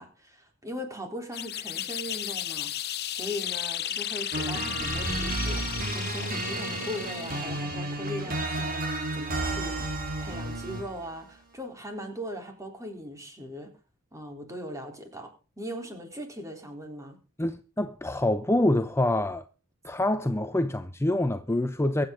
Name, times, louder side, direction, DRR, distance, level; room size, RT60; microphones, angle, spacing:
voice 1, 0.0-13.7 14.1-15.3 15.6-17.2, equal, 15° right, 3.8 m, -39 dB
sound 1, 1.3-7.7, left 11 dB, 50° left, 0.9 m, -34 dB
sound 2, 4.3-11.0, right 2 dB, 45° right, 3.6 m, -32 dB
voice 2, 17.4-19.4 19.8-22.1, left 1 dB, 10° left, 0.7 m, -26 dB
23.5 x 8.5 x 3.9 m
head